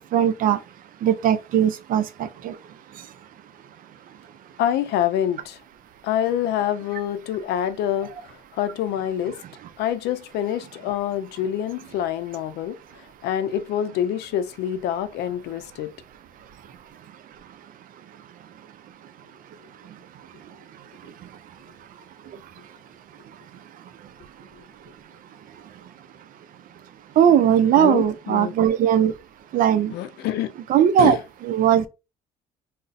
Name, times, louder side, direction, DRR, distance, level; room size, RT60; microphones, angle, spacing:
voice 1, 0.1-0.6 1.0-2.5 27.2-29.1 29.5-29.9 30.7-31.2 31.4-31.9, right 9 dB, 55° right, 0.4 m, -19 dB
voice 2, 4.6-5.6 6.0-8.1 8.5-9.4 9.8-12.8 13.2-15.9 27.8-28.5 29.9-30.5 31.0-31.2, left 10 dB, 80° left, 0.5 m, -26 dB
2.5 x 2.1 x 3.9 m
cardioid pair, 110°, 17 cm